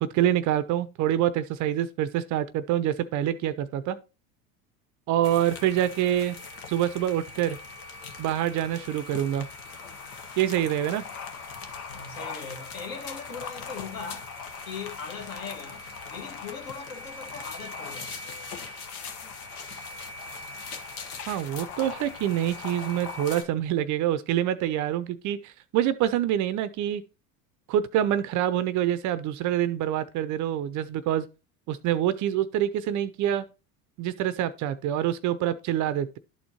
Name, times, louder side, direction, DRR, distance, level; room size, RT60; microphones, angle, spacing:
voice 1, 0.1-4.0 5.1-6.4 6.7-7.6 8.2-9.5 10.4-11.0 21.3-27.0 27.7-31.2 31.7-33.4 34.0-36.2, right 11 dB, 45° right, 0.5 m, -26 dB
Les champs du Buto blanc, 5.2-23.4, left 4 dB, 75° left, 1.2 m, -40 dB
voice 2, 11.9-14.3 14.6-15.8 16.1-18.2, left 5 dB, 50° left, 1.8 m, -39 dB
11.5 x 4.3 x 2.8 m
hypercardioid pair, 75°, 45 cm